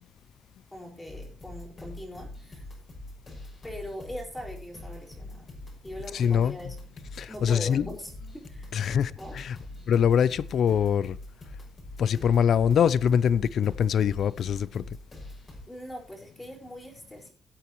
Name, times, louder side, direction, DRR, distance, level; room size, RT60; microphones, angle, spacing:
voice 1, 0.7-2.6 3.6-5.5 5.8-6.9 7.3-8.7 9.2-9.4 15.7-17.3, left 1 dB, 15° left, 5.0 m, -41 dB
sound 1, 1.1-15.6, left 2 dB, 35° left, 6.1 m, -44 dB
voice 2, 6.1-6.6 7.2-7.9 8.7-9.6 9.9-11.2 12.0-14.9, left 8 dB, 65° left, 0.4 m, -23 dB
17.5 x 8.5 x 3.1 m
cardioid pair, 90°, 0 cm